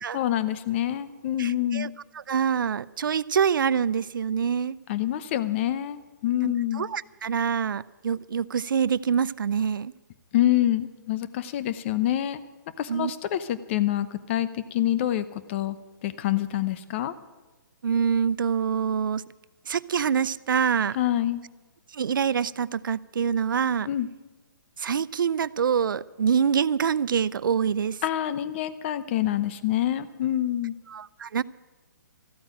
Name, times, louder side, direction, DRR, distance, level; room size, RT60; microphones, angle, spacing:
voice 1, 0.1-1.9 4.9-6.9 10.3-12.4 12.8-15.8 16.0-17.1 21.0-21.4 23.9-24.1 28.0-30.7, left 12 dB, 35° left, 14 dB, 0.8 m, -26 dB
voice 2, 1.4-4.8 6.4-9.9 12.9-13.1 17.8-19.2 19.7-21.0 21.9-23.9 24.8-28.0 30.9-31.4, right 7 dB, 75° right, 19 dB, 0.5 m, -25 dB
14.5 x 8.7 x 9.1 m, 1.2 s
hypercardioid pair, 150°, 11 cm